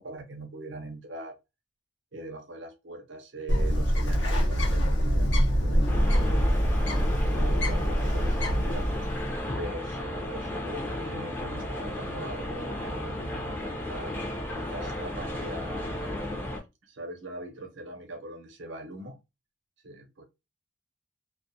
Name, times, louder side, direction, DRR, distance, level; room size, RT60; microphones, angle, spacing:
voice 1, 0.0-1.3 2.1-6.4 7.2-8.9 9.6-14.1 14.5-16.0 16.8-19.2 19.8-20.2, right 2 dB, 80° right, 0.7 m, -41 dB
Bird, 3.5-9.4, equal, 75° left, 0.8 m, -25 dB
sound 1, 5.9-16.6, left 1 dB, 10° left, 0.5 m, -34 dB
2.3 x 2.1 x 2.6 m
head